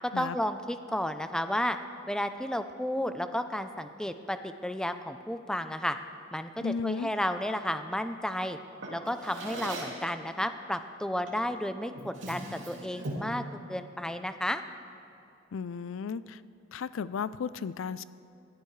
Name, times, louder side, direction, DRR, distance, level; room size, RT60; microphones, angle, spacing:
voice 1, 0.0-1.8 2.1-6.0 6.3-8.6 8.9-14.6, left 1 dB, 5° left, 9 dB, 0.5 m, -32 dB
voice 2, 6.6-7.1 15.5-16.4 16.7-18.0, left 5 dB, 85° left, 16 dB, 0.4 m, -34 dB
Drawer open or close, 8.8-10.1 11.3-11.5 11.9-13.4, right 1 dB, 70° right, 2.8 m, -39 dB
21.0 x 14.5 x 3.3 m, 2.7 s
head